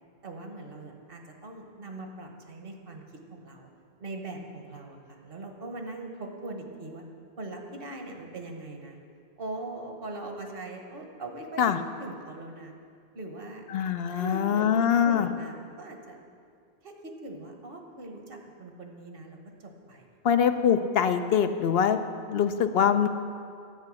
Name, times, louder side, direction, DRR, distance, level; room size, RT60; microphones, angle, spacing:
voice 1, 0.2-3.0 3.3-3.7 4.0-7.0 7.4-9.0 9.4-11.7 12.0-12.7 13.1-13.6 14.1-14.7 15.0-16.2 16.8-16.9 17.2-20.1, right 2 dB, 60° right, 3 dB, 1.3 m, -41 dB
voice 2, 13.7-15.3 20.2-22.0 22.3-23.1, left 8 dB, 70° left, 9 dB, 0.8 m, -23 dB
10.5 x 8.3 x 6.2 m, 2.3 s
omnidirectional pair, 1.1 m